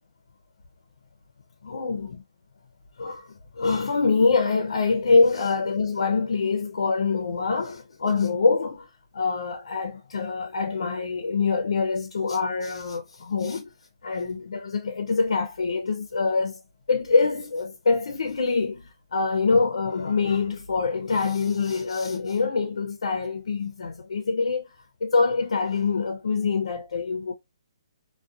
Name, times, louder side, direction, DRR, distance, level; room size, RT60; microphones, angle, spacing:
voice 1, 1.6-2.2 3.0-8.9 9.1-13.7 14.0-16.6 16.9-24.7 25.0-27.3, left 4 dB, 90° left, 0.5 m, -25 dB
2.3 x 2.1 x 2.5 m
hypercardioid pair, 175°, 3 cm